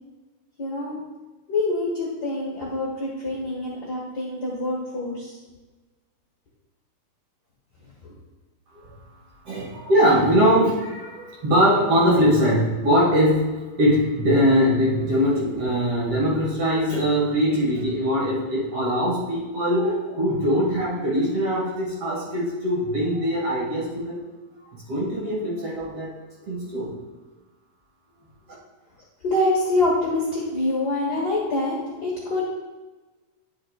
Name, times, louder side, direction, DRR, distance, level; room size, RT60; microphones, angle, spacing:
voice 1, 0.6-1.0 1.5-5.3 29.2-32.4, left 2 dB, 45° left, -4 dB, 1.3 m, -25 dB
voice 2, 9.5-24.2 24.7-26.1 26.4-26.9, equal, 50° right, -5 dB, 2.2 m, -22 dB
10.5 x 6.5 x 2.3 m, 1.2 s
omnidirectional pair, 4.0 m